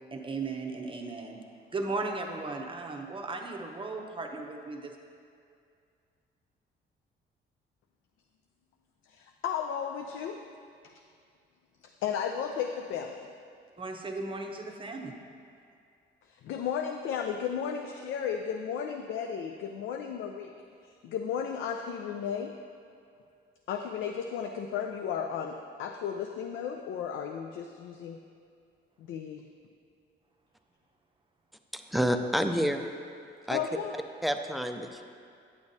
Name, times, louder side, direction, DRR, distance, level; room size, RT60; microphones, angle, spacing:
voice 1, 0.1-1.4 1.7-5.0 13.8-15.2, right 3 dB, 25° right, 2 dB, 0.7 m, -36 dB
voice 2, 9.1-10.4 12.0-13.3 16.3-20.5 20.8-22.5 23.7-28.2 29.0-29.5 33.5-34.0, left 7 dB, 80° left, 4 dB, 0.4 m, -34 dB
voice 3, 31.7-32.8 33.5-33.6 34.2-35.0, equal, ahead, 6 dB, 0.4 m, -28 dB
9.3 x 6.9 x 2.7 m, 2.4 s
cardioid pair, 90°, 20 cm